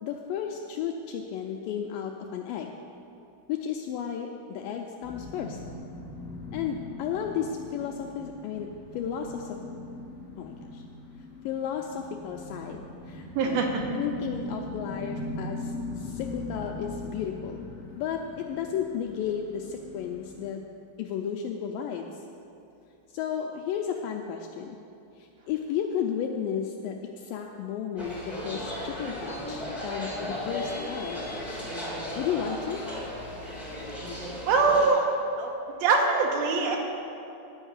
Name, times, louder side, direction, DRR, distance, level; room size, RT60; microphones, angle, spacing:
voice 1, 0.0-2.7 3.5-5.6 6.5-8.7 9.0-9.6 10.4-10.8 11.4-13.6 13.9-17.6 17.9-20.6 21.0-22.2 23.1-24.8 25.2-31.2 32.2-32.8, left 8 dB, 85° left, 2 dB, 2.0 m, -33 dB
sound 1, 5.0-20.5, left 2 dB, 55° left, 0.9 m, -40 dB
voice 2, 13.4-13.7 34.5-35.1 35.4-35.5 35.8-36.8, right 4 dB, 75° right, 1 dB, 2.6 m, -23 dB
sound 2, 28.0-34.9, left 1 dB, ahead, 0.4 m, -35 dB
11.0 x 5.4 x 8.1 m, 2.7 s
omnidirectional pair, 4.3 m